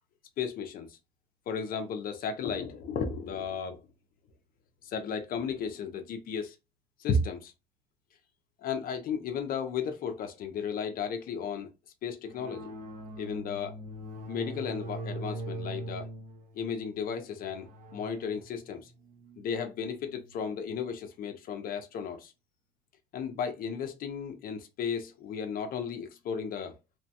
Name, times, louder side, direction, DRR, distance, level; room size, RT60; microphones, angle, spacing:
voice 1, 0.4-1.0 1.5-3.8 4.8-6.6 7.0-7.5 8.6-11.7 12.0-12.7 13.2-13.7 14.3-16.1 16.5-18.9 19.4-22.3 23.1-26.7, left 5 dB, 60° left, 0.5 m, -34 dB
sound 1, 12.3-20.4, right 1 dB, 55° right, 0.9 m, -42 dB
3.0 x 2.1 x 2.8 m
cardioid pair, 110°, 17 cm